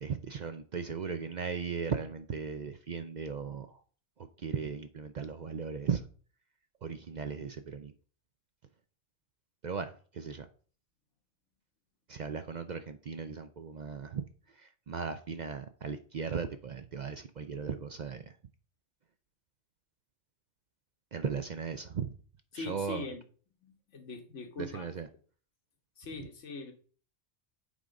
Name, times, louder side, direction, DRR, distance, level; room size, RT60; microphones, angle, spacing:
voice 1, 0.0-3.8 4.2-6.0 6.8-7.9 9.6-10.5 12.1-18.3 21.1-22.1 22.5-23.1 24.6-25.1, right 6 dB, 55° right, 0.5 m, -37 dB
voice 2, 22.5-23.2 23.6-24.9 26.0-26.7, left 3 dB, 85° left, 1.5 m, -42 dB
8.1 x 3.8 x 5.2 m
omnidirectional pair, 1.2 m